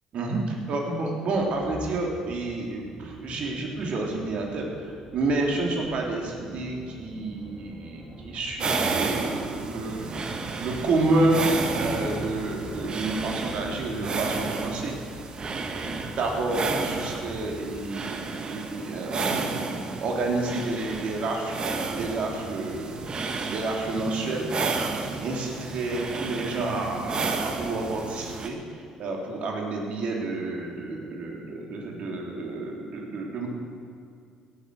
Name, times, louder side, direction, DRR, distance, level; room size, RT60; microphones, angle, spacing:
voice 1, 0.1-10.1 10.6-11.4 11.7-14.9 15.7-19.5 20.0-21.6 21.8-23.0 23.5-24.5 24.9-33.5, right 2 dB, 60° right, 0 dB, 3.4 m, -29 dB
sound 1, 1.3-18.2, right 1 dB, 5° right, 2.4 m, -45 dB
sound 2, 8.6-28.5, right 4 dB, 40° right, 1.7 m, -32 dB
17.0 x 8.3 x 7.8 m, 2.4 s
hypercardioid pair, 60°, 2 cm